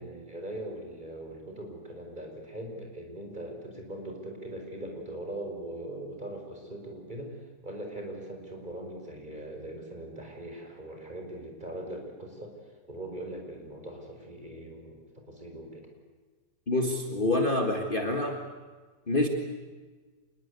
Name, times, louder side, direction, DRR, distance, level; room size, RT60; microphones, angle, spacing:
voice 1, 0.0-7.4 7.6-12.6 12.8-15.9, right 1 dB, 25° right, 2 dB, 5.1 m, -41 dB
voice 2, 16.7-18.4 19.1-19.3, left 2 dB, 30° left, 2 dB, 2.1 m, -26 dB
26.5 x 21.0 x 8.3 m, 1.4 s
omnidirectional pair, 1.8 m